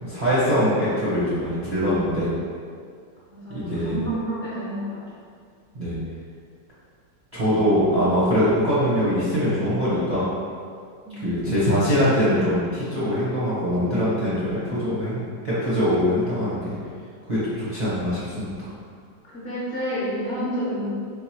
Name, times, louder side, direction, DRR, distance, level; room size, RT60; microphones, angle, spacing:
voice 1, 0.0-2.3 3.5-4.0 5.7-5.9 7.3-10.2 11.2-16.8 17.3-18.7, equal, 35° right, -11 dB, 0.7 m, -23 dB
voice 2, 3.3-5.0 11.0-11.3 19.2-20.9, equal, 55° left, -9 dB, 0.9 m, -29 dB
3.7 x 3.7 x 3.0 m, 2.2 s
omnidirectional pair, 2.0 m